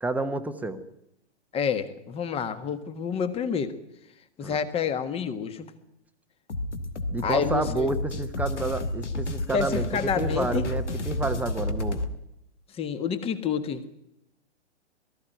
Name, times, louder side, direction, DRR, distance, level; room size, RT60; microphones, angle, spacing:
voice 1, 0.0-0.8 4.4-4.6 7.1-9.9 10.2-12.1, right 2 dB, 5° right, 8 dB, 1.1 m, -30 dB
voice 2, 1.5-3.7 4.4-5.7 7.2-7.9 9.5-10.6 12.7-13.9, left 6 dB, 15° left, 12 dB, 1.5 m, -28 dB
sound 1, 6.5-12.1, left 1 dB, 85° left, 2.3 m, -31 dB
19.0 x 14.5 x 9.3 m, 0.81 s
hypercardioid pair, 125°, 35 cm